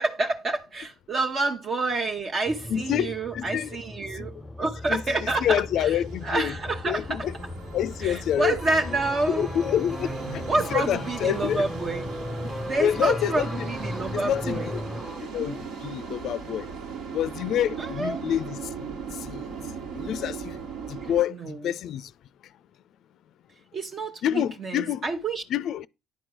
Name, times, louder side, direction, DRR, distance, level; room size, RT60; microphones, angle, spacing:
voice 1, 0.0-7.3 8.0-9.6 10.0-10.2 10.5-12.1 12.6-14.7 15.3-15.6 17.8-18.2 21.0-21.6 23.7-25.4, right 3 dB, 45° right, 0.9 m, -29 dB
sound 1, 2.5-15.0, left 1 dB, 5° left, 0.7 m, -38 dB
voice 2, 2.7-3.7 4.2-4.3 4.9-5.0 5.4-6.5 6.9-7.3 7.7-8.6 9.3-10.4 10.7-11.6 12.8-13.7 14.1-14.8 15.2-16.7 17.1-19.6 19.9-20.6 20.9-22.1 24.2-25.0 25.5-25.9, left 10 dB, 60° left, 0.4 m, -27 dB
sound 2, 5.2-21.2, right 5 dB, 70° right, 1.6 m, -39 dB
sound 3, 8.6-15.3 15.5-15.7, right 1 dB, 15° right, 1.3 m, -38 dB
10.5 x 4.5 x 6.2 m
hypercardioid pair, 60°, 0 cm